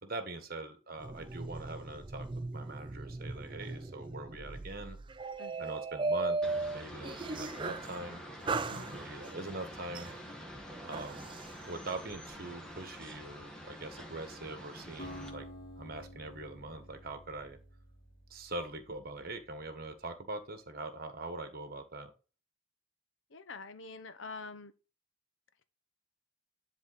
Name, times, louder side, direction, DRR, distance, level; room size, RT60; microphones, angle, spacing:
voice 1, 0.0-2.3 2.5-5.0 5.6-6.4 6.6-8.2 8.8-10.1 10.8-11.3 11.7-15.5 15.8-17.6 18.3-22.1, right 2 dB, 45° right, 1.4 m, -42 dB
sound 1, 1.0-8.0 8.5-9.4 9.9-11.5, right 3 dB, 25° right, 0.4 m, -37 dB
voice 2, 5.4-5.7 8.7-9.0 23.3-24.7, left 4 dB, 65° left, 0.9 m, -46 dB
sound 2, 6.4-15.3, equal, 5° left, 1.3 m, -47 dB
Acoustic guitar, 15.0-19.1, equal, 25° left, 2.9 m, -50 dB
10.5 x 3.9 x 4.0 m
head